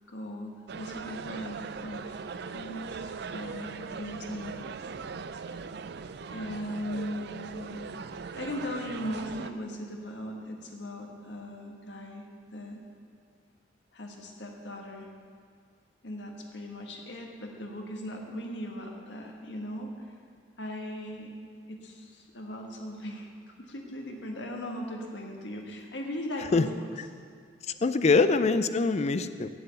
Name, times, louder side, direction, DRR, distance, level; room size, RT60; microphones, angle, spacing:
voice 1, 0.1-2.2 2.5-4.7 6.3-7.8 8.3-12.3 12.5-12.8 13.9-15.1 16.0-20.1 20.6-21.3 21.7-23.3 23.6-26.9 28.1-28.3, left 1 dB, 75° left, 1 dB, 1.5 m, -38 dB
sound 1, 0.7-9.5, right 5 dB, 65° right, 0.4 m, -40 dB
voice 2, 27.8-29.5, left 4 dB, 35° left, 12 dB, 0.4 m, -23 dB
7.8 x 7.7 x 8.3 m, 2.1 s
head